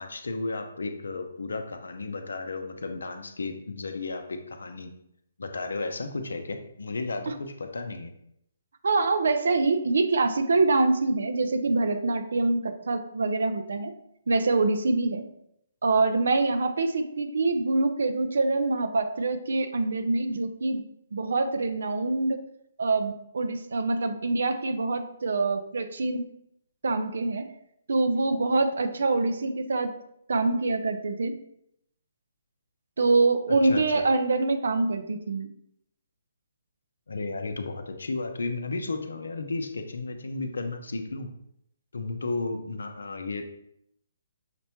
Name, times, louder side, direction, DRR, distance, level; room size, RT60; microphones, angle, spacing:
voice 1, 0.0-4.9 5.4-8.1 33.6-34.0 37.1-41.3 41.9-43.4, left 3 dB, 85° left, 6 dB, 0.5 m, -33 dB
voice 2, 8.8-13.9 14.3-15.2 15.8-20.8 21.1-22.4 22.8-26.2 26.8-27.5 27.9-29.9 30.3-31.4 33.0-35.5, right 3 dB, 75° right, 9 dB, 0.4 m, -25 dB
5.8 x 2.1 x 2.9 m, 0.75 s
hypercardioid pair, 150°, 0 cm